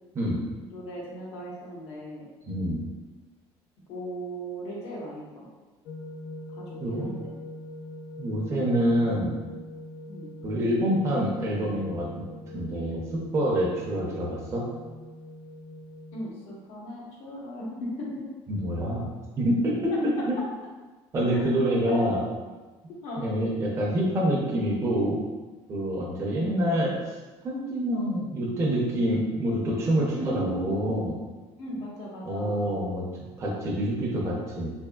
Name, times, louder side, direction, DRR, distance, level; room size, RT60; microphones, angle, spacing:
voice 1, 0.7-2.3 3.9-5.5 6.5-7.3 10.1-10.3 16.1-18.3 19.9-20.0 21.9-22.0 23.0-23.3 26.4-26.7 30.1-30.7 31.6-32.8, equal, 75° left, -4 dB, 1.0 m, -37 dB
voice 2, 2.5-2.8 6.8-7.1 8.2-9.3 10.4-12.2 12.5-14.6 18.5-19.1 19.4-20.4 21.1-22.2 23.2-25.2 25.7-26.9 27.4-31.2 32.2-33.0 33.4-34.7, equal, 25° right, -4 dB, 0.6 m, -26 dB
sound 1, 5.9-16.3, left 1 dB, 55° left, 0.5 m, -43 dB
3.4 x 3.4 x 2.2 m, 1.2 s
cardioid pair, 165°, 11 cm